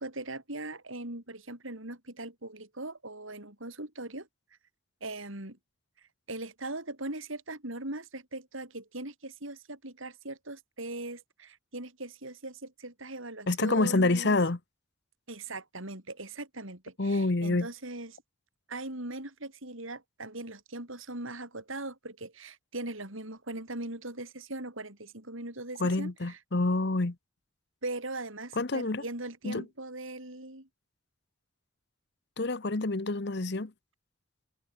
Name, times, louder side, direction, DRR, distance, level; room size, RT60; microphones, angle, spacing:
voice 1, 0.0-4.3 5.0-5.6 6.3-14.4 15.3-18.2 18.7-26.4 27.8-30.7, right 2 dB, 70° right, 5.8 m, -40 dB
voice 2, 13.5-14.6 17.0-17.7 25.8-27.1 28.6-29.0 29.4-29.6 32.4-33.7, left 2 dB, 50° left, 1.0 m, -27 dB
head